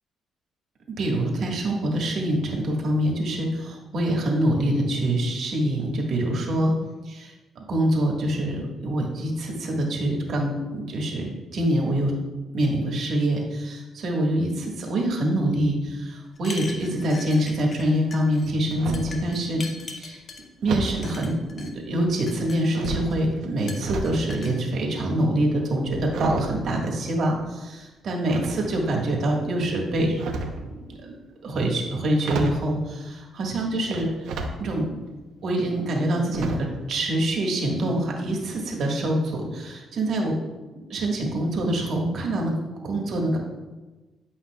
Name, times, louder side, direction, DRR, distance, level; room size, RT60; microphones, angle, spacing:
voice 1, 0.9-6.7 7.0-12.1 12.5-19.6 19.9-20.2 20.6-31.1 31.4-34.9 35.4-40.3 40.7-42.5 42.8-43.4, right 1 dB, 65° right, -1 dB, 1.6 m, -25 dB
sound 1, 16.4-17.9 18.1-18.5 18.9-20.4 21.0-21.7 22.1-23.1 23.7-24.5, left 3 dB, 45° left, 0.9 m, -40 dB
sound 2, 18.2-19.2 20.6-21.0 21.9-22.4 22.7-24.2 24.5-27.5 28.3-29.0 30.0-30.7 31.8-31.9 32.2-32.7 33.9-34.6 35.0-35.1 36.3-36.8 37.1-37.3 37.6-37.7, right 3 dB, 80° right, 0.8 m, -32 dB
10.5 x 5.4 x 2.3 m, 1.2 s
cardioid pair, 90°, 0 cm